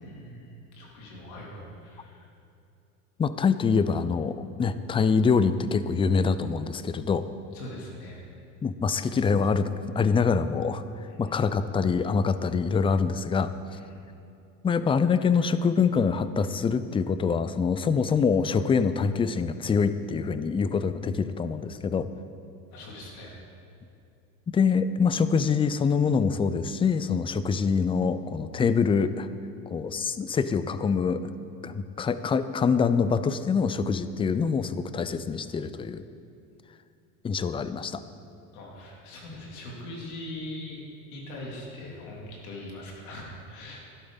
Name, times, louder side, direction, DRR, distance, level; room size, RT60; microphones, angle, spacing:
voice 1, 0.0-2.3 7.5-8.4 11.1-11.2 13.7-14.0 22.7-23.3 38.5-40.8 41.1-43.8, left 1 dB, 80° left, -2 dB, 3.1 m, -41 dB
voice 2, 3.2-7.3 8.6-9.7 10.0-10.8 11.2-13.5 14.6-22.1 24.5-29.3 29.7-31.3 31.6-36.0 37.2-38.0, left 5 dB, 15° left, 13 dB, 0.3 m, -25 dB
12.0 x 11.5 x 3.9 m, 2.6 s
supercardioid pair, 95°, 43 cm